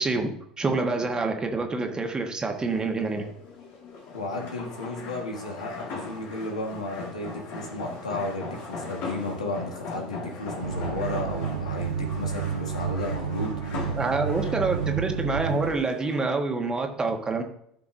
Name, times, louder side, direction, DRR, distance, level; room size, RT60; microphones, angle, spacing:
voice 1, 0.0-3.3 14.0-17.4, right 3 dB, 20° right, 4 dB, 1.5 m, -27 dB
sound 1, 2.5-16.3, left 3 dB, 55° left, 2.0 m, -40 dB
voice 2, 4.1-13.9, left 2 dB, 90° left, 0 dB, 1.7 m, -33 dB
sound 2, 10.6-15.7, right 7 dB, 80° right, 0.5 m, -30 dB
13.5 x 5.7 x 2.7 m, 0.72 s
hypercardioid pair, 75°, 4 cm